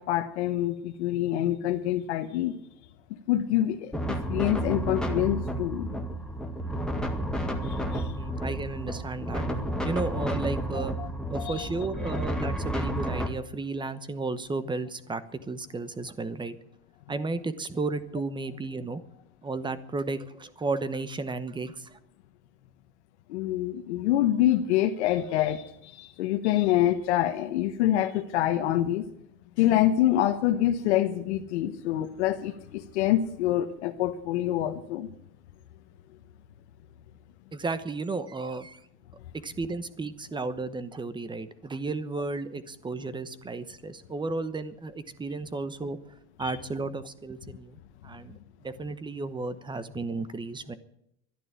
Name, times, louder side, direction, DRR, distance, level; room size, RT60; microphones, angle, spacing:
voice 1, 0.0-2.5 3.3-5.9 7.6-8.1 11.0-11.1 11.3-11.7 23.3-29.0 29.6-35.1 46.4-46.5, left 12 dB, 90° left, 6 dB, 1.1 m, -26 dB
sound 1, 3.9-13.3, right 1 dB, ahead, 1.8 m, -31 dB
voice 2, 7.9-9.4 9.8-10.9 11.3-16.6 17.1-19.0 19.4-22.0 37.5-38.8 39.4-46.0 46.4-47.8 48.0-48.4 48.6-50.7, right 3 dB, 15° right, 14 dB, 1.0 m, -33 dB
12.5 x 10.5 x 9.3 m, 0.75 s
supercardioid pair, 125°, 33 cm